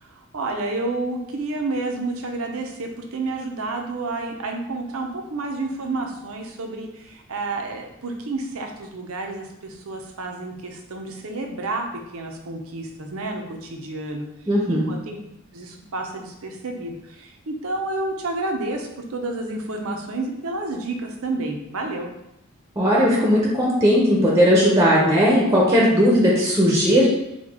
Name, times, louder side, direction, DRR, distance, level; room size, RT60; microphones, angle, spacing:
voice 1, 0.0-11.9 12.1-14.3 14.7-15.1 15.5-22.1, right 2 dB, 80° right, 3 dB, 0.7 m, -30 dB
voice 2, 14.5-14.9 22.8-27.1, equal, 15° right, -4 dB, 0.7 m, -17 dB
5.0 x 2.3 x 3.6 m, 0.87 s
head